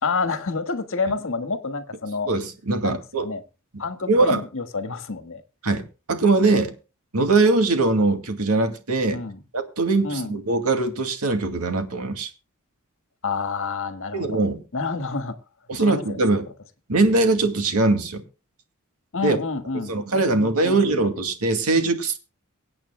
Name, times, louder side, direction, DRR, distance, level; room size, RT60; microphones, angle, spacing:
voice 1, 0.0-2.3 2.8-3.4 3.8-5.4 9.1-9.4 10.0-10.4 13.2-14.4 14.7-15.4 15.8-16.4 19.1-21.0, left 4 dB, 60° left, 1.6 m, -29 dB
voice 2, 2.3-3.3 3.7-4.4 5.6-5.8 6.1-6.7 7.1-9.2 9.5-12.3 14.1-14.6 15.7-16.4 16.9-18.2 19.2-19.4 19.9-22.2, right 3 dB, 75° right, 2.3 m, -21 dB
24.5 x 8.8 x 2.2 m
head